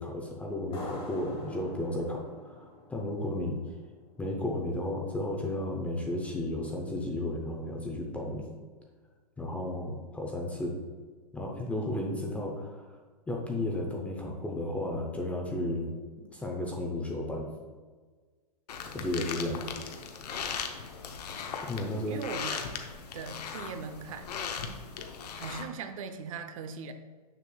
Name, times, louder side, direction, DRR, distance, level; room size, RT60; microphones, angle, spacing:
voice 1, 0.0-3.6 4.2-8.5 9.4-10.8 11.3-12.9 13.3-15.9 16.3-17.5 18.9-19.7 21.6-22.2, left 1 dB, 5° left, -1 dB, 0.6 m, -33 dB
sound 1, 0.7-4.0, left 2 dB, 30° left, 1.6 m, -44 dB
sound 2, 18.7-25.6, left 6 dB, 80° left, 0.8 m, -38 dB
voice 2, 22.1-22.8 23.1-24.3 25.3-26.9, right 5 dB, 55° right, 8 dB, 0.7 m, -40 dB
6.6 x 6.6 x 2.3 m, 1.5 s
hypercardioid pair, 140°, 20 cm